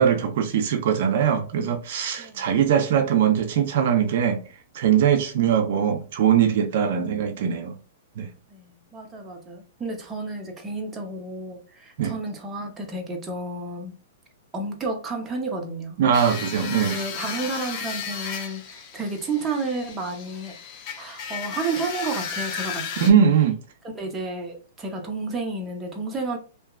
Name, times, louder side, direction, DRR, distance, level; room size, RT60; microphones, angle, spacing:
voice 1, 0.0-4.4 4.7-7.7 8.2-8.3 12.0-12.1 16.0-17.0 23.0-23.6, right 8 dB, 60° right, 0.4 m, -21 dB
voice 2, 2.2-2.5 8.5-13.9 14.5-16.0 16.6-20.5 21.0-23.1 23.8-26.4, right 3 dB, 15° right, 0.6 m, -31 dB
sound 1, 16.1-23.1, left 6 dB, 40° left, 0.6 m, -34 dB
2.7 x 2.2 x 2.3 m
hypercardioid pair, 140°, 0 cm